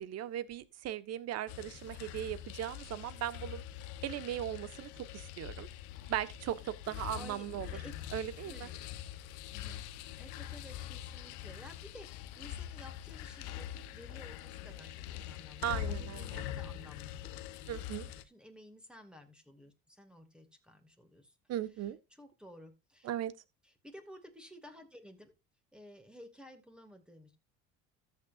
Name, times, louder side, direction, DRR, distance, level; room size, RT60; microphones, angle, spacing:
voice 1, 0.0-3.6 4.0-5.7 6.1-7.7 8.1-8.7 15.6-16.4 17.7-18.1 21.5-22.0 23.0-23.3, right 11 dB, 55° right, 1.4 m, -38 dB
sound 1, 1.5-18.2, left 11 dB, 75° left, 1.1 m, -44 dB
voice 2, 7.1-7.9 8.4-8.8 9.5-9.8 10.2-17.9 18.2-21.4 22.1-23.1 23.6-25.3 25.7-27.4, equal, 5° right, 2.3 m, -54 dB
14.0 x 7.1 x 2.5 m
supercardioid pair, 90°, 30 cm